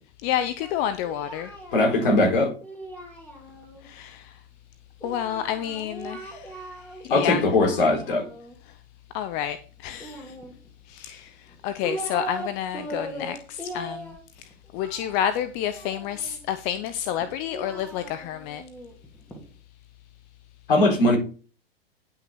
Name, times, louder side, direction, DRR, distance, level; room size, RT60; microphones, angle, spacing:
voice 1, 0.2-1.5 3.8-4.3 5.0-6.6 7.0-7.4 9.1-10.3 10.9-11.4 11.6-14.2 14.7-18.6, left 10 dB, 30° left, 0.6 m, -29 dB
Singing, 0.6-3.9 5.0-7.0 7.3-8.6 10.0-10.9 11.5-12.5 12.7-16.4 17.2-19.4, right 1 dB, 5° left, 2.8 m, -39 dB
voice 2, 1.7-2.5 7.1-8.3 20.7-21.2, left 2 dB, 60° left, 4.0 m, -20 dB
10.0 x 6.0 x 4.4 m
figure-of-eight pair, 95°, 30 cm